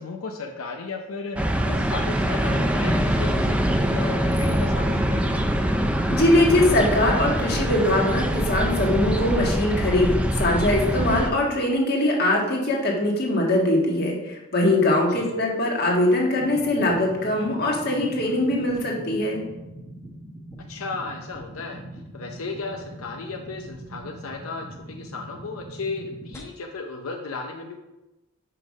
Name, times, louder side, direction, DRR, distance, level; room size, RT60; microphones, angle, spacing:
voice 1, 0.0-5.6 15.1-15.2 20.7-27.8, left 4 dB, 85° left, 3 dB, 0.7 m, -35 dB
sound 1, 1.4-11.3, equal, 5° right, 0.4 m, -24 dB
voice 2, 6.1-19.4, left 1 dB, 45° left, -1 dB, 1.5 m, -22 dB
sound 2, 16.4-26.4, right 1 dB, 10° left, 1.2 m, -42 dB
5.7 x 5.4 x 5.3 m, 1.0 s
head